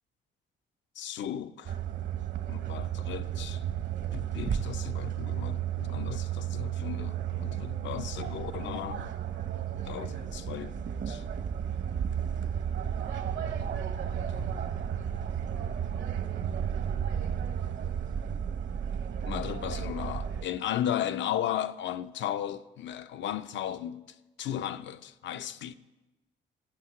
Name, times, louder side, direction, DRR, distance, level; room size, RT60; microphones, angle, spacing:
voice 1, 1.0-1.8 2.5-3.6 4.1-9.1 9.9-11.2 13.4-13.7 14.3-14.6 18.2-18.4 19.3-24.1 24.4-25.7, left 10 dB, 65° left, 0.6 m, -35 dB
sound 1, 1.6-20.4, right 9 dB, 65° right, 1.0 m, -33 dB
15.0 x 5.7 x 7.7 m
cardioid pair, 90°, 20 cm